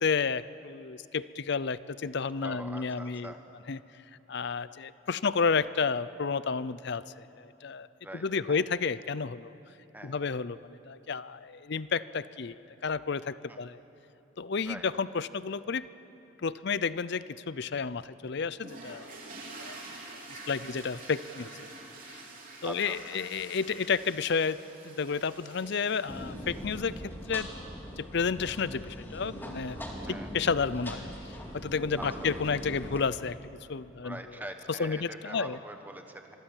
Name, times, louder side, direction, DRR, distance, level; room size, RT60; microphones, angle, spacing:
voice 1, 0.0-3.3 3.7-3.8 4.3-7.0 7.4-7.9 8.2-9.5 10.0-10.6 10.9-12.5 12.8-13.8 14.4-15.9 16.4-19.1 19.6-19.8 20.3-21.7 22.6-24.6 24.8-27.5 28.0-29.8 30.1-31.1 31.5-33.4 33.7-34.2 34.8-35.6, left 5 dB, 55° left, 16 dB, 0.5 m, -31 dB
voice 2, 2.4-3.4 8.0-8.7 9.9-10.2 13.5-13.6 14.6-14.9 22.6-23.0 30.0-30.3 32.0-32.3 34.0-36.4, right 1 dB, 10° right, 5 dB, 1.4 m, -43 dB
sound 1, 18.6-27.1, right 3 dB, 40° right, 3.6 m, -47 dB
sound 2, 26.1-33.0, equal, 10° left, 2.4 m, -41 dB
25.5 x 23.0 x 7.3 m, 3.0 s
head